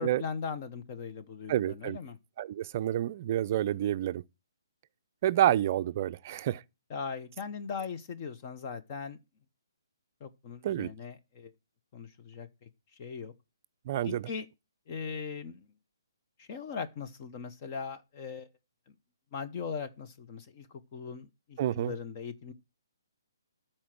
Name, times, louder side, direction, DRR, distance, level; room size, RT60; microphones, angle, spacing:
voice 1, 0.0-2.2 6.9-9.2 10.2-11.5 11.9-12.7 13.0-13.3 14.0-14.5 14.9-15.7 16.4-18.5 19.3-22.5, left 5 dB, 30° left, 0.9 m, -39 dB
voice 2, 1.5-2.0 2.4-4.2 5.2-6.6 10.6-10.9 13.9-14.3 21.6-21.9, right 12 dB, 35° right, 0.4 m, -28 dB
12.5 x 4.4 x 6.0 m
hypercardioid pair, 160°, 2 cm